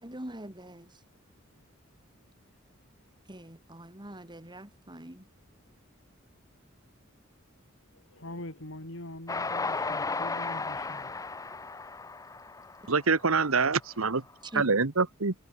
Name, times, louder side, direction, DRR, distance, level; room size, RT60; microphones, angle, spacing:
voice 1, 0.0-1.0 3.3-5.3 14.5-14.7, right 1 dB, 20° right, 3.8 m, -43 dB
voice 2, 7.9-11.1, left 1 dB, 65° left, 4.9 m, -43 dB
Train, 9.3-13.7, left 3 dB, 15° left, 0.6 m, -34 dB
voice 3, 12.9-14.2 14.5-15.3, right 4 dB, 90° right, 1.4 m, -25 dB
head